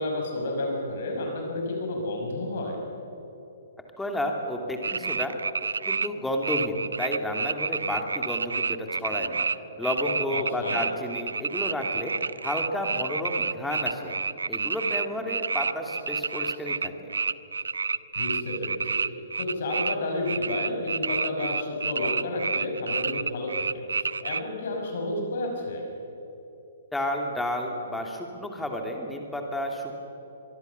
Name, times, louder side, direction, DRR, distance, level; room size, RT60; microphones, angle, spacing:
voice 1, 0.0-2.8 10.3-10.8 18.1-25.9, left 2 dB, 50° left, 2 dB, 5.6 m, -31 dB
voice 2, 4.0-5.4 5.8-9.4 9.8-14.1 14.5-17.1 26.9-30.0, left 1 dB, 5° left, 2 dB, 2.9 m, -31 dB
sound 1, 4.8-6.1 6.4-9.6 9.8-19.9 20.2-24.4, right 4 dB, 70° right, 0.5 m, -29 dB
24.0 x 23.0 x 7.0 m, 2.9 s
figure-of-eight pair, 120°, 0 cm